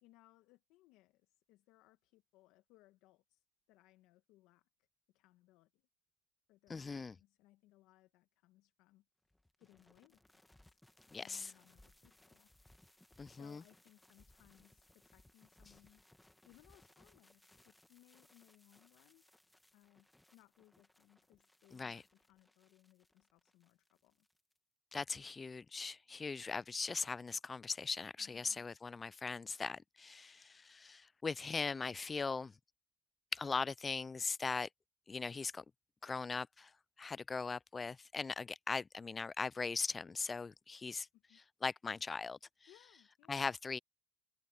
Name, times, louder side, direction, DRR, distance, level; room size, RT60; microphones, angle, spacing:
voice 1, 0.0-4.7 5.1-5.8 6.5-9.0 9.6-10.8 11.2-12.5 13.3-16.0 16.4-19.2 19.7-24.3 28.2-28.7 41.1-41.4 42.7-43.4, left 18 dB, 70° left, 1.3 m, -67 dB
voice 2, 6.7-7.1 11.1-11.5 13.2-13.6 21.7-22.0 24.9-32.5 33.3-34.7 35.1-35.6 36.0-36.7 37.0-41.1 41.6-42.4 43.3-43.8, left 4 dB, 20° left, 0.3 m, -40 dB
sound 1, 9.3-24.6, left 1 dB, 5° left, 2.0 m, -67 dB
supercardioid pair, 95°, 0 cm